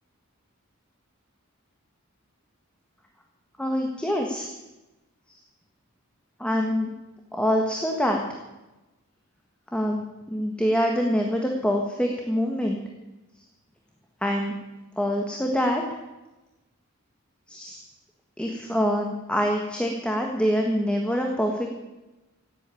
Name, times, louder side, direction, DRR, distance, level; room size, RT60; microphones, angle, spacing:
voice 1, 3.6-4.5 5.3-5.4 6.4-6.9 7.3-8.2 9.7-12.8 14.2-14.5 15.0-15.8 17.5-17.8 18.4-21.7, equal, 5° left, 1 dB, 1.5 m, -25 dB
17.0 x 8.5 x 9.8 m, 1.1 s
head